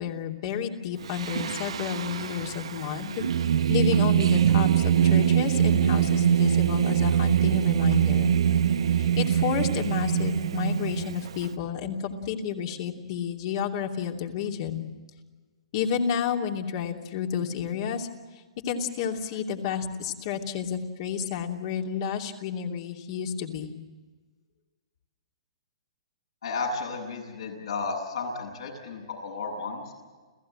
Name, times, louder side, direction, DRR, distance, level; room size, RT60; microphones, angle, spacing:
voice 1, 0.0-3.2 3.7-8.3 9.0-14.9 15.7-18.1 18.6-23.7, left 7 dB, 50° left, 2 dB, 2.8 m, -31 dB
Singing, 1.1-11.5, right 9 dB, 75° right, 0.9 m, -23 dB
voice 2, 26.4-29.9, left 4 dB, 75° left, 1 dB, 7.9 m, -33 dB
30.0 x 15.5 x 7.7 m, 1.4 s
hypercardioid pair, 130°, 3 cm